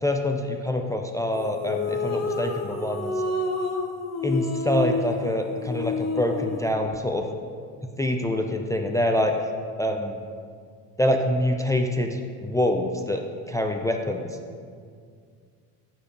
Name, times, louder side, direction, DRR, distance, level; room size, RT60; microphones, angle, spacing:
voice 1, 0.0-3.1 4.2-7.2 8.0-9.4 9.8-10.2 11.0-14.3, left 1 dB, 10° left, 3 dB, 0.3 m, -25 dB
sound 1, 1.3-6.7, left 3 dB, 40° left, 1.0 m, -29 dB
9.3 x 4.5 x 5.1 m, 2.1 s
supercardioid pair, 100°, 43 cm